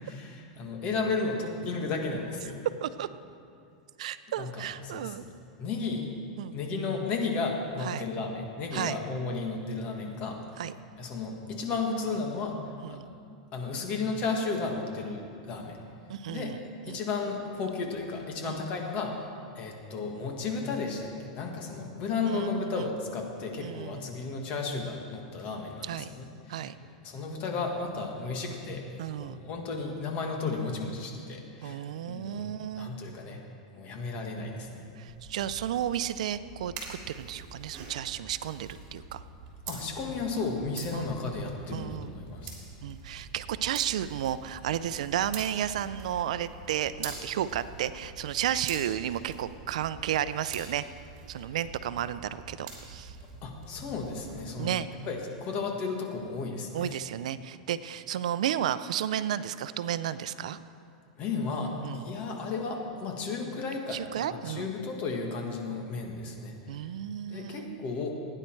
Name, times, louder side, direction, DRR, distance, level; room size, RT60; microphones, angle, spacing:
voice 1, 0.0-2.6 4.4-5.3 5.6-6.1 6.5-10.4 11.0-12.6 12.9-13.0 13.5-15.8 16.3-16.5 16.9-28.9 29.2-32.5 32.7-33.4 33.7-34.8 39.7-42.5 51.3-51.5 53.4-54.8 55.0-57.0 61.2-66.9 67.3-68.2, left 4 dB, 40° left, 2 dB, 1.8 m, -34 dB
voice 2, 4.0-5.2 6.4-6.5 7.8-8.0 8.7-9.0 10.6-10.7 12.8-13.1 16.1-17.0 18.4-18.6 22.3-22.9 23.6-24.1 25.8-26.1 26.5-26.7 29.0-29.4 31.6-32.9 35.0-39.2 40.9-41.1 41.7-42.1 42.8-50.8 51.3-53.2 54.6-54.9 56.7-60.6 61.8-62.1 63.9-64.7 66.7-67.8, right 10 dB, 80° right, 14 dB, 0.5 m, -33 dB
Breaking little pieces of wood, 35.1-54.5, right 4 dB, 40° right, 3.3 m, -45 dB
16.0 x 9.9 x 4.6 m, 2.4 s
supercardioid pair, 145°, 4 cm